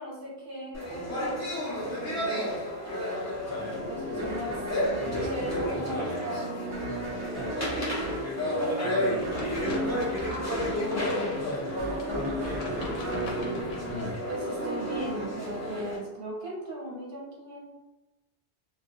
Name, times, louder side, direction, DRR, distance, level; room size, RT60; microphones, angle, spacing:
voice 1, 0.0-2.5 3.8-4.6 5.0-6.8 14.3-17.7, right 1 dB, 70° right, -3 dB, 0.8 m, -38 dB
sound 1, 0.7-16.0, equal, 25° left, 0.3 m, -32 dB
voice 2, 3.4-4.6 5.0-5.5 5.7-6.0 6.8-7.7 8.7-9.3 10.7-11.8 12.1-14.0, left 1 dB, 60° left, -3 dB, 0.8 m, -38 dB
sound 2, 4.2-14.4, right 1 dB, 40° right, 0.4 m, -39 dB
sound 3, 9.2-14.2, left 2 dB, 90° left, 0.8 m, -42 dB
2.2 x 2.1 x 2.7 m, 1.0 s
omnidirectional pair, 1.0 m